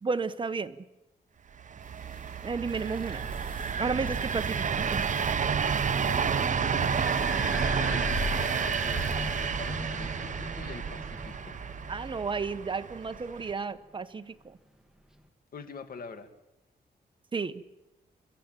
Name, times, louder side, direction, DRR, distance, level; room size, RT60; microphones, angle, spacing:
voice 1, 0.0-0.8 2.4-3.2 3.8-5.0 11.9-14.6 17.3-17.6, right 4 dB, 30° right, 10 dB, 1.2 m, -32 dB
sound 1, 1.6-13.5, right 6 dB, 45° right, 0.9 m, -30 dB
sound 2, 1.9-9.8, left 3 dB, 30° left, 2.9 m, -41 dB
voice 2, 5.8-7.0 7.7-11.6 15.5-16.3, left 5 dB, 60° left, 8 dB, 2.4 m, -44 dB
sound 3, 6.0-13.4, right 1 dB, 5° right, 1.8 m, -40 dB
30.0 x 13.0 x 9.0 m, 0.96 s
wide cardioid pair, 135°, 17 cm